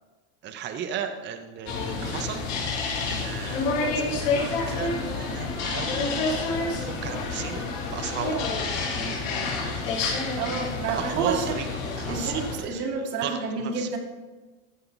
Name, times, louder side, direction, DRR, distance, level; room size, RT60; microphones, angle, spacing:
voice 1, 0.4-2.4 3.1-6.1 6.7-7.6 7.9-9.2 9.5-9.8 11.0-13.9, right 7 dB, 25° right, 6 dB, 0.7 m, -36 dB
sound 1, 1.7-12.5, left 3 dB, 65° left, 3.2 m, -29 dB
voice 2, 10.4-11.6 12.1-14.0, right 5 dB, 90° right, 1 dB, 2.0 m, -29 dB
14.0 x 5.5 x 3.9 m, 1.2 s
supercardioid pair, 130°, 45 cm